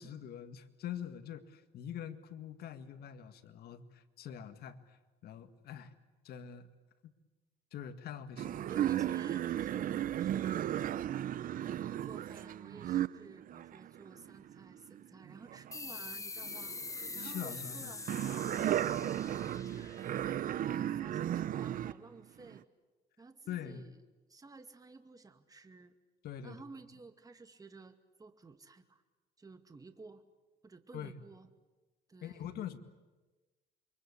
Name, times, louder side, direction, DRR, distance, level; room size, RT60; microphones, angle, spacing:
voice 1, 0.0-5.0 5.2-5.9 6.2-6.7 7.0-7.1 7.7-8.7 17.2-17.9 23.5-23.8 26.2-26.6 30.9-31.2 32.2-32.8, left 9 dB, 70° left, 9 dB, 2.0 m, -44 dB
sound 1, 8.4-16.1 16.4-21.9 22.4-22.6, right 11 dB, 55° right, 0.8 m, -35 dB
voice 2, 8.7-10.7 11.4-16.8 17.1-19.0 19.4-20.1 20.4-22.7 23.2-24.0 24.3-26.0 26.4-29.0 29.4-30.2 30.6-31.5 32.1-32.5, right 3 dB, 20° right, 8 dB, 2.3 m, -53 dB
sound 2, 15.7-20.9, left 3 dB, 20° left, 1.5 m, -44 dB
28.0 x 24.0 x 8.5 m, 1.2 s
cardioid pair, 110°, 17 cm